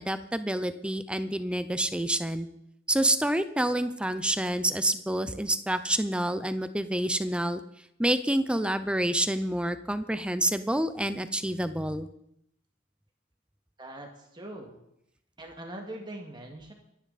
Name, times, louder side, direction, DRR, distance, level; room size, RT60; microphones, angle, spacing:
voice 1, 0.0-2.5 2.9-7.6 8.0-12.1, right 1 dB, 5° right, 11 dB, 0.6 m, -28 dB
voice 2, 13.8-14.8 15.4-16.7, right 1 dB, 20° right, 2 dB, 2.1 m, -42 dB
25.0 x 11.0 x 4.2 m, 0.76 s
head